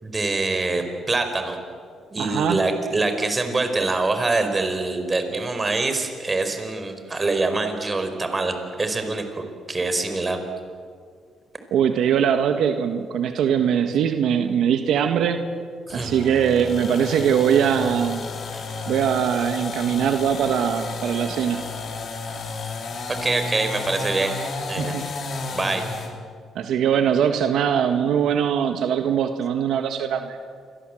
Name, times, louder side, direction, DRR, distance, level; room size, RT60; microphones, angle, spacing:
voice 1, 0.0-1.6 2.1-10.4 15.9-16.1 18.5-18.6 23.2-24.4 24.7-24.9 25.5-25.8, right 3 dB, 25° right, 7 dB, 4.6 m, -25 dB
voice 2, 2.2-2.6 11.7-15.4 15.9-18.3 18.9-21.6 24.8-25.0 26.5-30.4, right 8 dB, 75° right, 6 dB, 1.6 m, -21 dB
sound 1, 15.9-26.2, left 3 dB, 55° left, 4.4 m, -32 dB
28.0 x 23.5 x 7.9 m, 2.1 s
cardioid pair, 90°, 0 cm